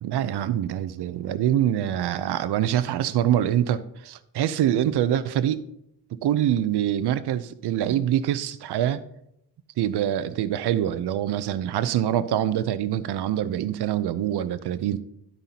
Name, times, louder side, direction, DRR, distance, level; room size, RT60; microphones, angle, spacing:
voice 1, 0.0-5.6 6.1-9.0 9.8-15.0, right 11 dB, 75° right, 14 dB, 0.7 m, -25 dB
11.5 x 9.1 x 2.9 m, 0.77 s
cardioid pair, 145°, 41 cm